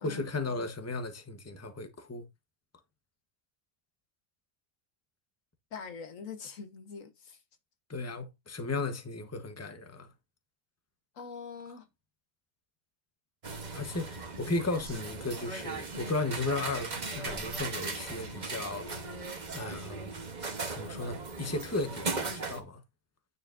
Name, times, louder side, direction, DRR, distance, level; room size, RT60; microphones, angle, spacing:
voice 1, 0.0-2.3 7.9-10.1 13.7-18.9 19.5-20.1 20.7-22.8, left 3 dB, 15° left, 1.0 m, -35 dB
voice 2, 5.7-7.4 11.1-11.9, left 5 dB, 85° left, 1.6 m, -43 dB
sound 1, 13.4-22.6, right 3 dB, 35° right, 1.2 m, -38 dB
9.4 x 6.6 x 2.6 m
omnidirectional pair, 1.3 m